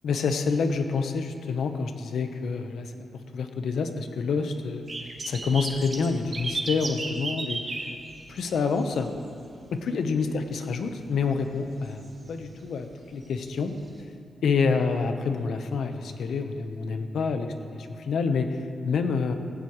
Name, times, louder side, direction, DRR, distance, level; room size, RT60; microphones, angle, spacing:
voice 1, 0.0-3.1 3.3-4.8 5.2-7.9 8.3-9.1 9.7-12.9 13.1-13.7 14.4-19.3, left 5 dB, 80° left, 6 dB, 1.1 m, -27 dB
sound 1, 4.9-9.1 9.3-9.7 10.1-10.2 11.5-11.6 12.0-12.1 13.2-13.3 14.0-14.1, right 3 dB, 40° right, 1.9 m, -33 dB
18.0 x 16.0 x 3.2 m, 2.6 s
cardioid pair, 100°, 0 cm